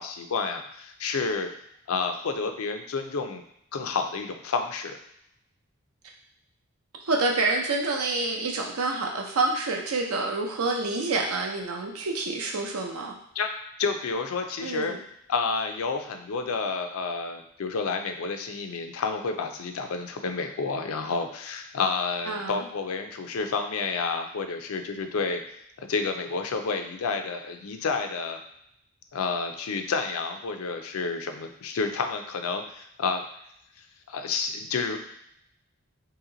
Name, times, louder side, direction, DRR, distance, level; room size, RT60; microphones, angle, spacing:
voice 1, 0.0-1.5 1.9-3.4 3.7-5.0 13.4-13.5 13.8-15.0 15.3-25.4 25.8-28.4 29.1-33.2 34.1-35.0, left 4 dB, 75° left, 6 dB, 0.4 m, -30 dB
voice 2, 7.1-13.1 14.6-15.0 22.3-22.6, right 3 dB, 85° right, 1 dB, 0.7 m, -27 dB
3.0 x 2.8 x 3.8 m, 0.74 s
head